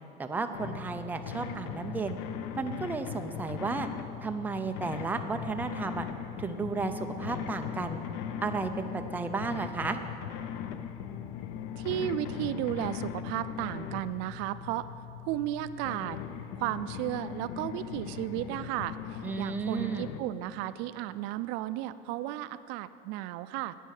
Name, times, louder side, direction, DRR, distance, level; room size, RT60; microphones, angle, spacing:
voice 1, 0.2-2.2 2.6-3.9 4.2-6.1 6.4-8.0 8.4-10.0 19.2-20.0, right 4 dB, 10° right, 6 dB, 0.5 m, -33 dB
sound 1, 0.5-20.2, left 9 dB, 90° left, 0.7 m, -39 dB
voice 2, 11.8-14.9 15.3-16.2 16.6-23.8, right 13 dB, 75° right, 14 dB, 0.4 m, -34 dB
11.0 x 9.1 x 6.5 m, 2.8 s
cardioid pair, 155°, 18 cm